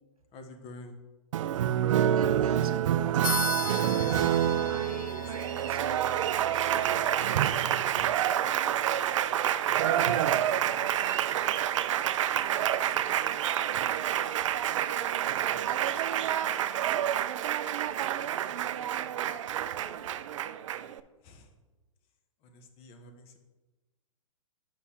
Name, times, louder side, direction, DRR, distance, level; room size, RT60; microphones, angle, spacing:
voice 1, 0.3-1.0 4.1-4.6 4.9-5.3 9.7-10.1 21.2-21.5 22.4-23.4, left 3 dB, 30° left, 6 dB, 0.9 m, -47 dB
Applause, 1.3-21.0, right 11 dB, 60° right, 0.4 m, -28 dB
voice 2, 2.0-3.3 4.5-8.8 9.7-11.7 12.3-15.0 16.4-18.4 18.7-20.2, right 4 dB, 90° right, 8 dB, 0.7 m, -46 dB
sound 1, 3.2-13.2, left 8 dB, 90° left, 0.4 m, -42 dB
8.1 x 6.1 x 2.8 m, 1.2 s
hypercardioid pair, 115°, 18 cm